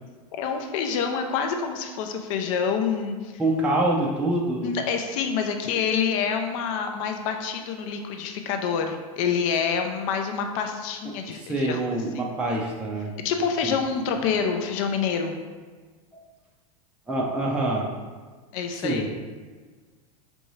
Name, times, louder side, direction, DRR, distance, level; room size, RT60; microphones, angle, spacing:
voice 1, 0.4-3.3 4.6-11.8 13.2-15.3 18.5-19.1, left 6 dB, 60° left, 5 dB, 0.5 m, -27 dB
voice 2, 3.4-4.7 11.3-13.1 16.1-16.2 17.1-17.9 18.7-19.1, right 1 dB, 5° right, -3 dB, 0.4 m, -25 dB
4.5 x 2.6 x 3.1 m, 1.4 s
supercardioid pair, 120°, 18 cm